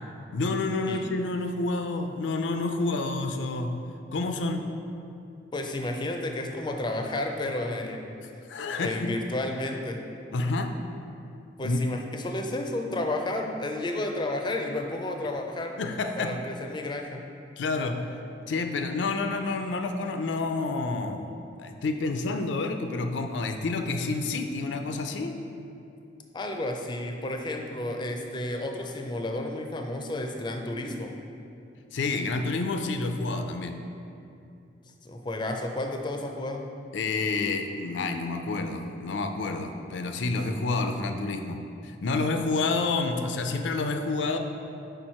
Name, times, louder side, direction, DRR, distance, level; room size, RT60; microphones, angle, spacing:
voice 1, 0.3-3.7 4.1-4.7 8.5-9.2 10.3-10.8 11.6-11.8 15.8-16.4 17.6-18.0 18.5-21.2 21.6-25.4 31.9-33.8 36.9-44.4, left 3 dB, 80° left, 6 dB, 0.4 m, -29 dB
voice 2, 5.5-8.1 8.8-10.0 11.6-15.7 16.2-17.2 26.3-31.1 35.0-36.7, left 1 dB, 25° left, 3 dB, 0.4 m, -32 dB
5.1 x 4.5 x 4.3 m, 2.6 s
head